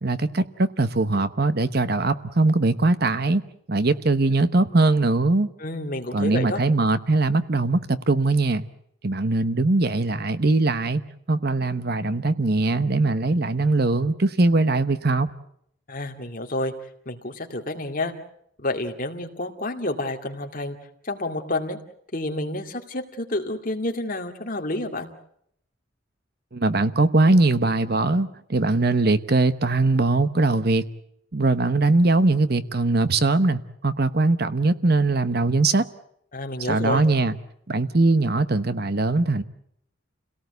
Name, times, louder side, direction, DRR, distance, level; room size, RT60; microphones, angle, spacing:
voice 1, 0.0-5.5 6.1-8.7 9.0-11.0 11.3-15.3 26.5-30.8 31.3-35.8 36.7-37.3 37.7-39.4, right 2 dB, 50° right, 12 dB, 1.0 m, -21 dB
voice 2, 5.6-6.6 15.9-16.7 17.1-18.1 18.6-20.8 21.0-21.8 22.1-25.1 36.3-37.0, left 2 dB, 40° left, 4 dB, 2.3 m, -29 dB
29.0 x 18.0 x 8.1 m, 0.73 s
head